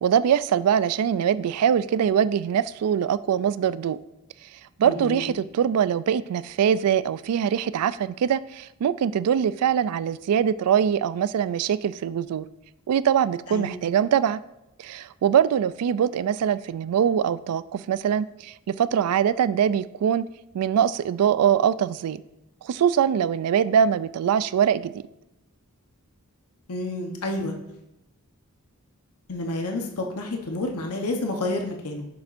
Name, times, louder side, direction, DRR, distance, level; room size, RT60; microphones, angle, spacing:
voice 1, 0.0-4.0 4.8-12.5 12.9-14.4 14.8-20.2 20.5-22.2 22.6-24.9, right 8 dB, 85° right, 16 dB, 0.3 m, -23 dB
voice 2, 4.8-5.3 13.5-13.8 26.7-27.5 29.3-32.1, left 2 dB, 90° left, 2 dB, 1.0 m, -29 dB
10.5 x 7.0 x 2.6 m, 0.88 s
head